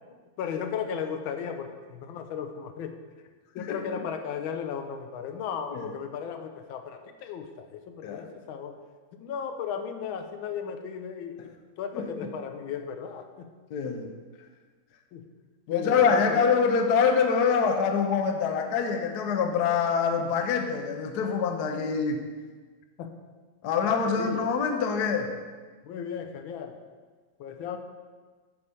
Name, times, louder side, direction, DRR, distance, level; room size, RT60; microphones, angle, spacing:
voice 1, 0.1-3.0 3.5-8.8 9.1-13.5 15.1-15.2 15.7-16.4 23.0-23.1 23.8-24.5 25.8-26.8 27.4-27.8, left 7 dB, 85° left, 7 dB, 1.5 m, -36 dB
voice 2, 11.9-12.3 13.7-14.1 15.7-22.2 23.6-25.3, left 6 dB, 65° left, 5 dB, 1.1 m, -25 dB
8.6 x 4.8 x 5.3 m, 1.4 s
omnidirectional pair, 2.2 m